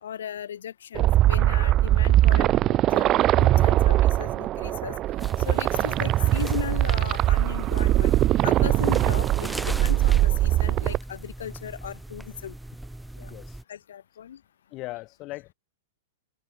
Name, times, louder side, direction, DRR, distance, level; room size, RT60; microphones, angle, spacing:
voice 1, 0.0-5.0 5.4-8.1 8.4-12.5 13.2-13.3 13.7-14.4, left 9 dB, 80° left, 4.4 m, -37 dB
sound 1, 0.9-11.0, right 14 dB, 35° right, 1.0 m, -21 dB
sound 2, 5.2-13.6, right 1 dB, 5° right, 1.4 m, -39 dB
voice 2, 13.2-13.6 14.7-15.5, left 20 dB, 40° left, 6.5 m, -38 dB
open air
hypercardioid pair, 115°, 0 cm